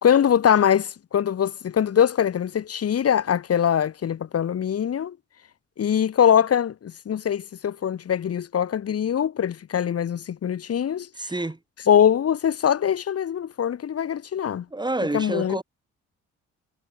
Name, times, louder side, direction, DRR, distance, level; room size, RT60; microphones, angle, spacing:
voice 1, 0.0-5.2 5.8-11.1 11.9-14.7 15.1-15.6, left 9 dB, 50° left, 1.8 m, -22 dB
voice 2, 11.2-11.6 14.7-15.6, right 2 dB, 15° right, 1.9 m, -28 dB
cardioid pair, 90°, 30 cm